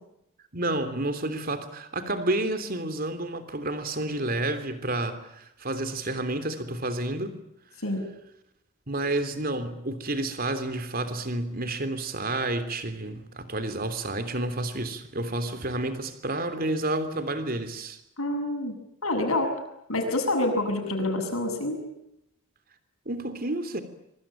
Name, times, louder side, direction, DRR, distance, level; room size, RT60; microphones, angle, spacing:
voice 1, 0.5-7.4 8.9-18.0 23.0-23.8, right 2 dB, 45° right, 10 dB, 3.2 m, -30 dB
voice 2, 18.2-18.7 19.0-19.6 19.9-21.8, left 2 dB, 90° left, 5 dB, 7.5 m, -27 dB
25.5 x 24.5 x 9.0 m, 0.81 s
head